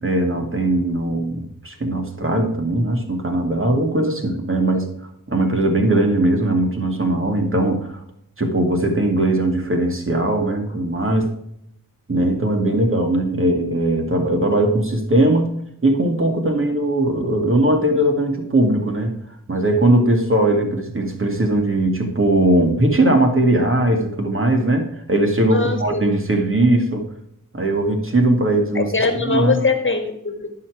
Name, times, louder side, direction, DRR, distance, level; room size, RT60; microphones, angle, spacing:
voice 1, 0.0-4.9 5.3-8.0 8.4-11.3 12.1-15.5 15.8-19.2 19.5-27.0 27.5-28.9 29.3-29.6, right 1 dB, 40° right, 3 dB, 2.2 m, -19 dB
voice 2, 25.5-26.1 28.7-30.5, left 4 dB, 35° left, 6 dB, 1.7 m, -22 dB
11.5 x 5.8 x 4.8 m, 0.73 s
wide cardioid pair, 60°, 33 cm